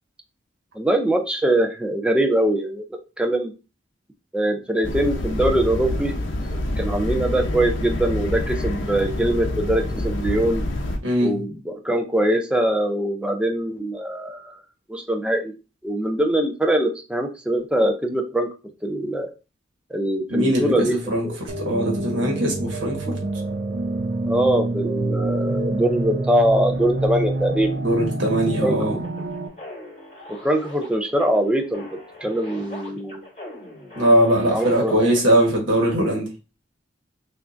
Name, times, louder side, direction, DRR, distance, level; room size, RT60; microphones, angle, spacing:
voice 1, 0.8-2.8 3.2-3.5 4.3-6.1 6.5-10.6 11.2-14.6 14.9-15.5 15.8-18.5 18.8-19.3 19.9-21.0 21.2-21.4 24.2-27.7 28.6-29.0 30.3-33.2 34.5-34.9, right 1 dB, 5° right, 4 dB, 0.5 m, -22 dB
sound 1, 4.8-11.0, left 1 dB, 80° left, 0.7 m, -27 dB
voice 2, 11.0-11.4 20.3-23.2 27.8-29.0 33.9-36.3, equal, 80° right, 0 dB, 1.3 m, -21 dB
sound 2, 21.5-29.5, right 2 dB, 60° right, 0.6 m, -27 dB
sound 3, 29.0-35.5, left 2 dB, 35° left, 2.0 m, -41 dB
5.4 x 2.5 x 2.5 m, 0.31 s
head